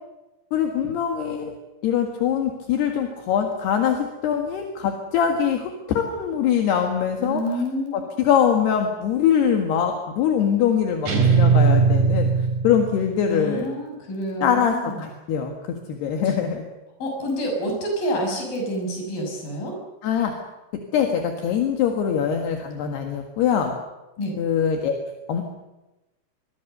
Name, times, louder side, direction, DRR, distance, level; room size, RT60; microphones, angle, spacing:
voice 1, 0.5-1.5 1.8-7.4 8.2-12.3 12.6-13.7 14.4-15.5 15.9-16.6 20.0-20.3 20.9-23.7 24.4-25.0 25.3-25.4, left 8 dB, 70° left, 3 dB, 3.7 m, -23 dB
voice 2, 7.2-7.9 13.3-15.1 16.2-16.3 17.0-19.8 24.2-24.4, equal, 50° left, 1 dB, 8.3 m, -28 dB
sound 1, 11.1-13.1, right 5 dB, 45° right, 5.2 m, -18 dB
25.5 x 22.5 x 6.8 m, 1.0 s
omnidirectional pair, 5.1 m